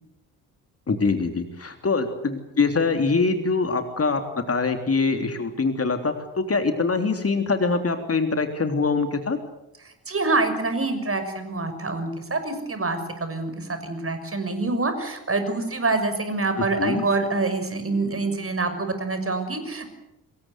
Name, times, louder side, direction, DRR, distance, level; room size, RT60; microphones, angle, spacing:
voice 1, 0.9-9.4 16.6-17.0, left 4 dB, 30° left, 7 dB, 3.4 m, -24 dB
voice 2, 10.1-19.9, right 3 dB, 30° right, 9 dB, 6.3 m, -26 dB
26.0 x 22.0 x 8.2 m, 0.87 s
figure-of-eight pair, 45°, 46 cm